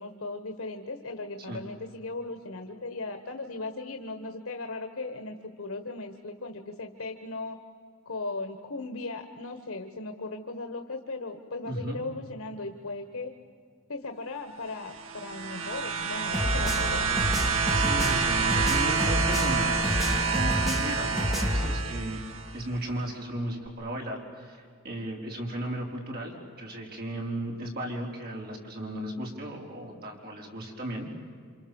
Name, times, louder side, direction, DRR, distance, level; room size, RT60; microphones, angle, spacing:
voice 1, 0.0-7.6 8.0-13.3 13.9-17.2, left 3 dB, 85° left, 6 dB, 1.5 m, -37 dB
voice 2, 11.7-12.0 17.7-22.2 22.5-31.2, right 1 dB, 50° right, -1 dB, 5.0 m, -35 dB
sound 1, 14.8-22.6 23.7-23.8, right 5 dB, 70° right, 2.3 m, -28 dB
sound 2, 16.3-21.7, equal, ahead, 2.3 m, -29 dB
28.5 x 27.0 x 7.2 m, 2.1 s
head